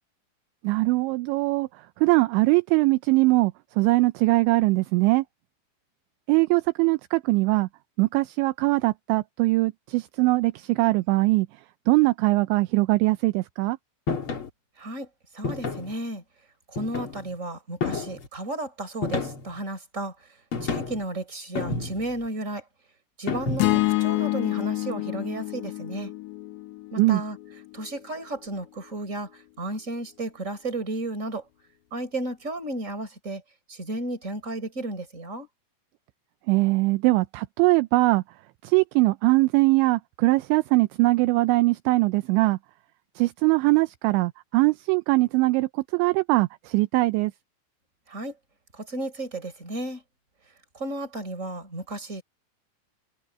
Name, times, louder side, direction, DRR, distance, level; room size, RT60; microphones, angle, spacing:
voice 1, 0.6-1.7 2.0-5.3 6.3-7.7 8.0-11.5 11.9-13.8 27.0-27.2 36.5-38.2 38.6-42.6 43.2-47.3, right 22 dB, 80° right, 2.8 m, -21 dB
sound 1, 14.1-14.5 15.4-15.9 16.8-17.3 17.8-18.3 19.0-19.6 20.5-21.0 21.5-22.2 23.3-23.9, left 4 dB, 30° left, 3.0 m, -30 dB
voice 2, 14.8-16.2 16.7-20.1 20.6-22.6 23.2-26.1 26.9-27.4 27.7-31.4 31.9-33.4 33.7-35.5 48.1-48.3 48.7-50.0 50.7-52.2, right 1 dB, 15° right, 4.9 m, -33 dB
sound 2, 23.6-27.9, left 18 dB, 70° left, 3.4 m, -28 dB
omnidirectional pair, 5.6 m